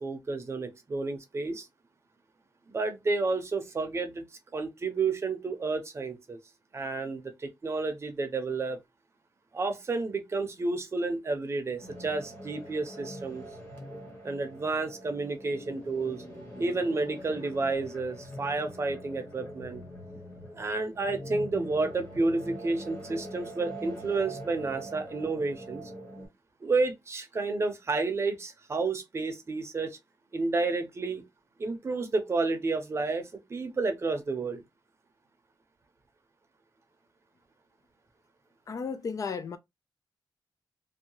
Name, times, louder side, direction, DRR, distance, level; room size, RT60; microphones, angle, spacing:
voice 1, 0.0-1.6 2.7-4.2 4.5-6.4 6.7-7.3 7.6-8.8 9.5-13.4 14.2-16.2 16.6-19.8 20.5-25.8 26.6-29.9 30.3-31.2 31.6-34.6, right 3 dB, 35° right, 0.6 m, -30 dB
sound 1, 11.8-26.3, equal, 25° left, 1.2 m, -43 dB
voice 2, 38.7-39.6, left 5 dB, 45° left, 0.3 m, -34 dB
2.7 x 2.2 x 2.8 m
wide cardioid pair, 150°, 8 cm